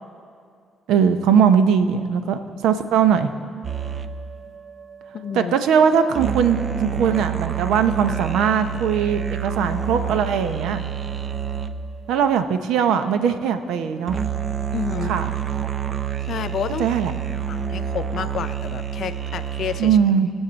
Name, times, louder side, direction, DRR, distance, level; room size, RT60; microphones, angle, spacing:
voice 1, 0.9-3.3 5.3-10.8 12.1-14.2 15.1-15.3 16.8-17.1 19.8-20.3, right 7 dB, 90° right, 9 dB, 0.7 m, -20 dB
sound 1, 3.6-12.1 14.1-19.9, right 8 dB, 40° right, 0.6 m, -28 dB
voice 2, 5.1-5.5 14.7-15.2 16.2-16.9 17.5-20.0, left 8 dB, 65° left, 11 dB, 0.5 m, -30 dB
20.5 x 7.2 x 4.0 m, 2.2 s
cardioid pair, 90°, 0 cm